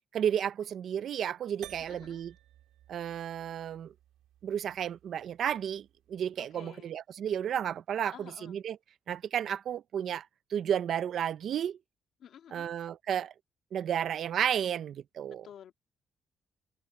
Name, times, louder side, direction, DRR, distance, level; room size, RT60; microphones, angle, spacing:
voice 1, 0.1-2.3 2.9-3.9 4.4-8.1 8.5-8.8 9.1-11.8 12.5-13.3 13.7-15.5, right 9 dB, 65° right, 0.6 m, -32 dB
sound 1, 1.6-6.2, right 13 dB, 85° right, 4.3 m, -55 dB
voice 2, 1.8-2.2 6.4-6.9 8.1-8.6 12.2-12.7 15.4-15.7, left 9 dB, 70° left, 2.2 m, -51 dB
cardioid pair, 90°, 0 cm